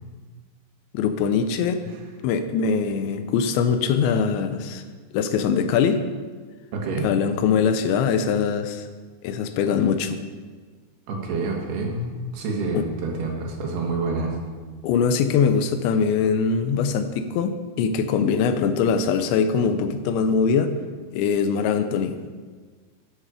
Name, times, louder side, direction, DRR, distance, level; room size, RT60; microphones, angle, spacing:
voice 1, 0.9-1.8 2.2-4.8 5.1-6.0 7.0-8.9 9.2-10.2 12.7-12.9 14.8-20.7 21.1-22.2, left 6 dB, 85° left, 9 dB, 3.1 m, -22 dB
voice 2, 6.7-7.1 11.1-14.4, right 3 dB, 70° right, 0 dB, 3.5 m, -28 dB
12.5 x 9.6 x 4.9 m, 1.5 s
omnidirectional pair, 5.1 m